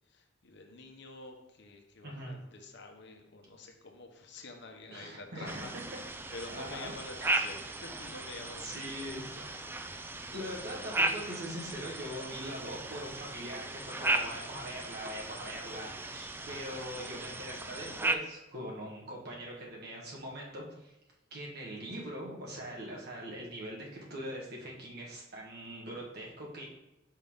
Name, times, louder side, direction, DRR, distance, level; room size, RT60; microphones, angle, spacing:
voice 1, 0.1-6.0 6.3-9.6 16.4-16.9, left 2 dB, 65° left, 3 dB, 1.0 m, -48 dB
voice 2, 2.0-2.4 4.9-5.8 6.5-6.9 7.2-7.4 8.6-9.6 10.3-20.9 21.3-26.7, equal, 60° right, -3 dB, 1.6 m, -42 dB
sound 1, 5.5-18.2, right 2 dB, 10° right, 0.3 m, -36 dB
5.5 x 3.5 x 5.5 m, 0.95 s
head